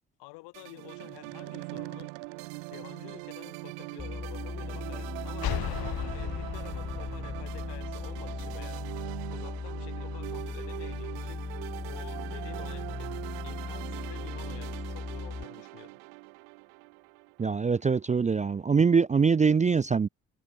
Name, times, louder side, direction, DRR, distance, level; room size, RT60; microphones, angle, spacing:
voice 1, 0.2-2.1 2.7-8.9 9.3-11.4 11.8-16.0, left 25 dB, 80° left, 3.7 m, -49 dB
sound 1, 0.5-17.9, right 36 dB, 85° right, 5.5 m, -41 dB
sound 2, 4.0-15.4, left 4 dB, 25° left, 1.5 m, -38 dB
sound 3, 5.4-8.9, left 12 dB, 60° left, 1.2 m, -37 dB
voice 2, 17.4-20.1, right 5 dB, 20° right, 0.4 m, -23 dB
hypercardioid pair, 40°, 41 cm